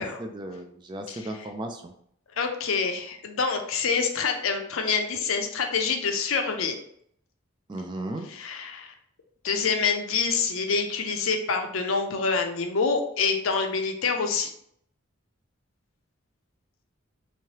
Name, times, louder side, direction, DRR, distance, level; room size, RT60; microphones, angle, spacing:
voice 1, 0.0-1.9 7.7-8.3, right 1 dB, 20° right, 6 dB, 0.3 m, -35 dB
voice 2, 2.4-6.7 8.3-8.9 9.4-14.5, left 5 dB, 75° left, 5 dB, 0.6 m, -26 dB
3.5 x 3.2 x 2.9 m, 0.69 s
head